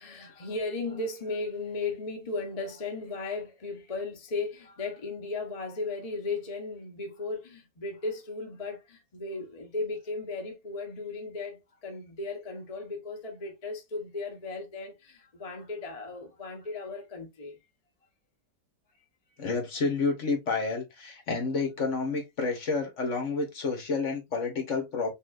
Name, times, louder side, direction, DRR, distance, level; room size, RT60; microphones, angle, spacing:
voice 1, 0.0-17.6, left 3 dB, 30° left, 0.7 m, -36 dB
voice 2, 19.4-25.1, left 4 dB, 55° left, 1.4 m, -29 dB
5.5 x 2.4 x 2.4 m
omnidirectional pair, 1.7 m